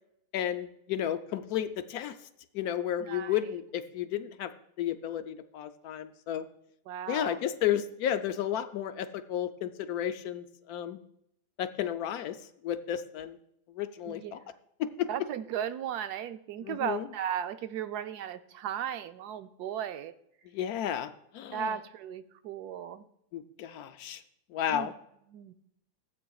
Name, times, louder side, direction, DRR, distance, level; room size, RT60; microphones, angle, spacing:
voice 1, 0.3-2.1 2.5-4.5 4.8-6.4 7.1-11.0 11.6-12.4 12.6-13.4 13.8-14.4 14.8-15.1 16.6-17.1 20.5-21.8 23.3-24.2 24.5-24.9, left 10 dB, 75° left, 10 dB, 1.0 m, -32 dB
voice 2, 3.0-3.4 6.9-7.4 14.1-14.4 15.1-20.1 21.5-23.1 24.7-24.9 25.3-25.5, right 9 dB, 80° right, 10 dB, 1.1 m, -36 dB
15.5 x 8.4 x 2.3 m, 0.75 s
omnidirectional pair, 1.7 m